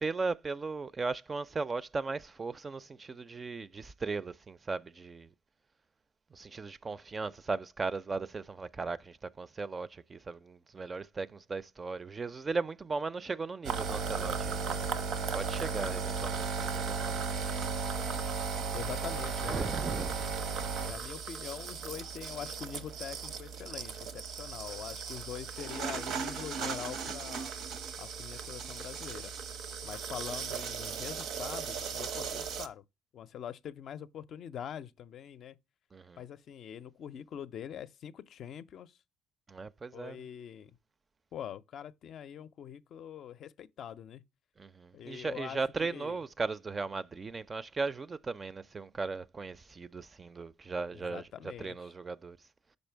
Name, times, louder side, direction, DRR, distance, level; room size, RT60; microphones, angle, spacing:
voice 1, 0.0-5.3 6.3-14.9 15.3-17.2 19.5-20.2 35.9-36.2 39.5-40.2 44.6-51.3 51.6-52.4, right 4 dB, 35° right, 0.4 m, -37 dB
sound 1, 13.6-32.7, right 5 dB, 70° right, 0.7 m, -36 dB
voice 2, 18.7-19.7 20.1-20.3 20.9-27.5 28.0-29.3 29.8-32.8 33.1-35.6 36.2-39.0 39.9-40.7 41.3-44.2 44.9-46.2 50.9-51.9, left 9 dB, 60° left, 0.4 m, -44 dB
5.3 x 4.8 x 4.5 m
supercardioid pair, 65°, 0 cm